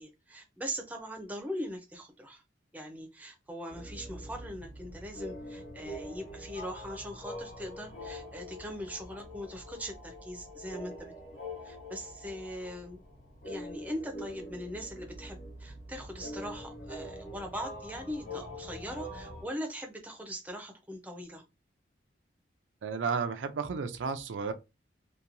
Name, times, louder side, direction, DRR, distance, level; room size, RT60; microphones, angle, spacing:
voice 1, 0.0-2.4 2.7-11.3 11.6-13.0 13.4-21.4, equal, 10° right, 0.5 m, -41 dB
sound 1, 3.7-19.4, equal, 50° left, 1.1 m, -44 dB
voice 2, 22.8-24.5, right 5 dB, 85° right, 0.4 m, -32 dB
2.9 x 2.2 x 2.5 m
head